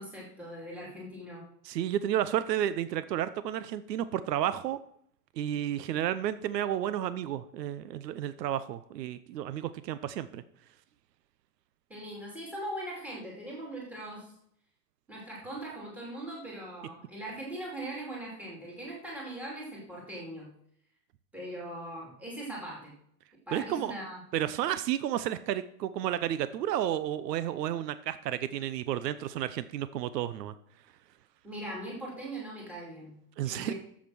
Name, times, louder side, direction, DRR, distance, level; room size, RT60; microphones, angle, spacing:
voice 1, 0.0-1.5 11.9-14.3 15.1-20.5 21.3-22.9 23.5-24.2 31.4-33.7, right 1 dB, 5° right, -3 dB, 2.5 m, -40 dB
voice 2, 1.6-4.8 5.4-10.4 23.5-23.9 24.3-30.5 33.4-33.7, right 11 dB, 85° right, 14 dB, 0.8 m, -32 dB
8.5 x 7.5 x 6.1 m, 0.68 s
supercardioid pair, 165°, 48 cm